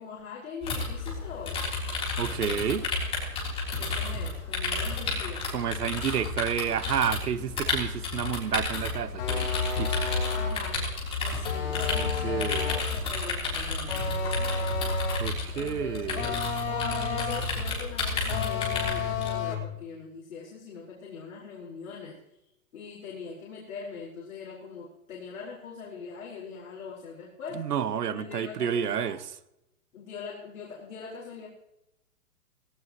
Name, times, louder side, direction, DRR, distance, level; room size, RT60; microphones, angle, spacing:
voice 1, 0.0-1.7 3.8-5.5 10.3-10.9 11.2-14.8 15.5-22.2 22.7-27.7 28.1-29.2 29.9-31.5, left 5 dB, 60° left, -4 dB, 4.9 m, -42 dB
sound 1, 0.6-19.3, left 3 dB, 10° left, 3.7 m, -32 dB
voice 2, 2.2-2.9 5.5-9.5 9.8-10.1 11.9-12.7 15.2-16.3 27.5-29.2, right 8 dB, 85° right, 12 dB, 1.4 m, -30 dB
sound 2, 9.2-10.7 11.5-13.0 13.9-15.4 16.2-17.6 18.3-19.7, left 4 dB, 35° left, 2.6 m, -31 dB
18.0 x 17.5 x 3.1 m, 0.85 s
hypercardioid pair, 165°, 46 cm